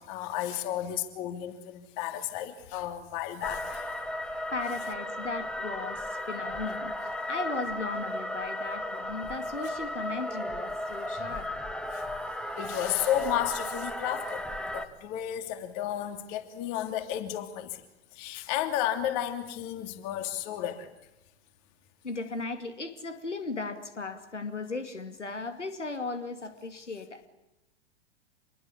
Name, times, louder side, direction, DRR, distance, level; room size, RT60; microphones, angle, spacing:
voice 1, 0.0-3.9 11.9-12.0 12.6-14.4 14.7-17.7 18.1-20.9, left 11 dB, 40° left, 9 dB, 2.9 m, -32 dB
sound 1, 3.4-14.9, left 1 dB, ahead, 1.8 m, -35 dB
voice 2, 4.5-7.0 7.3-11.5 22.0-27.3, left 3 dB, 80° left, 9 dB, 2.5 m, -36 dB
26.5 x 21.5 x 8.3 m, 0.93 s
figure-of-eight pair, 105°, 35 cm